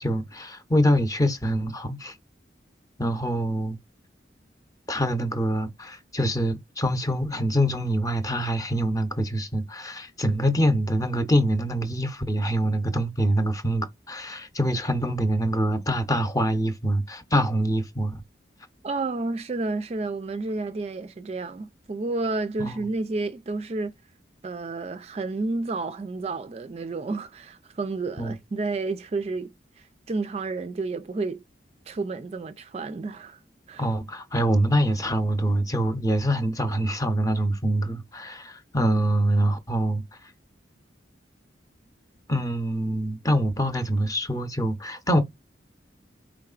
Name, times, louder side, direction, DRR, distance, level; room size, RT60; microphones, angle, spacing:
voice 1, 0.0-2.1 3.0-3.8 4.9-18.2 22.6-22.8 28.2-28.4 33.8-40.0 42.3-45.2, equal, 20° left, 0.7 m, -25 dB
voice 2, 18.8-23.9 24.4-31.4 31.9-33.4 33.7-33.9, right 3 dB, 35° right, 0.3 m, -31 dB
4.7 x 3.6 x 2.4 m
head